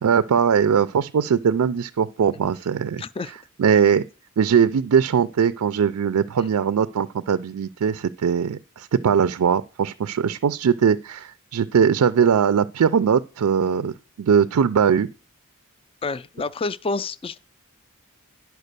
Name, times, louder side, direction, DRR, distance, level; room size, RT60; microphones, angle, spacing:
voice 1, 0.0-3.0 3.6-4.0 4.4-15.1, right 7 dB, 85° right, 0.4 m, -20 dB
voice 2, 3.0-3.3 16.0-17.4, left 3 dB, 25° left, 0.4 m, -28 dB
10.5 x 4.6 x 6.7 m
head